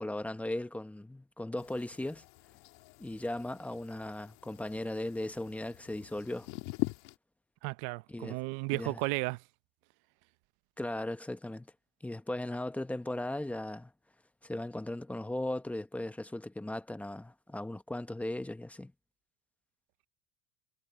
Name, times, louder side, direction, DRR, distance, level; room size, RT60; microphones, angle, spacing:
voice 1, 0.0-2.2 3.0-6.5 8.1-8.4 8.7-9.0 10.8-11.7 12.0-13.9 14.4-18.9, left 1 dB, 5° left, 0.9 m, -37 dB
sound 1, 1.6-7.1, left 23 dB, 75° left, 2.1 m, -43 dB
voice 2, 7.6-9.4, right 23 dB, 65° right, 0.8 m, -34 dB
cardioid pair, 150°, 39 cm